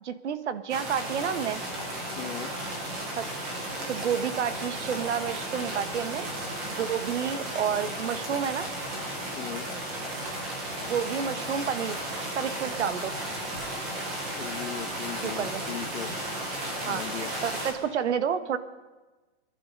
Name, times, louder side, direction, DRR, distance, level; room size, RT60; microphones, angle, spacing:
voice 1, 0.0-1.6 3.2-3.3 3.8-6.3 6.7-8.7 10.8-12.0 12.3-13.1 15.2-15.6 16.9-18.6, right 8 dB, 85° right, 12 dB, 1.2 m, -30 dB
sound 1, 0.7-17.7, right 1 dB, 5° right, 0.4 m, -34 dB
voice 2, 2.1-2.5 9.3-9.7 14.3-16.1 16.8-17.3, left 10 dB, 80° left, 5 dB, 1.0 m, -38 dB
sound 2, 2.9-4.1 4.4-5.5 6.3-6.6 7.0-7.4 7.8-9.7 10.1-10.4 11.4-12.0 12.3-13.7 15.1-15.2, right 4 dB, 50° right, 4.0 m, -53 dB
24.0 x 11.0 x 5.3 m, 1.2 s
hypercardioid pair, 180°, 34 cm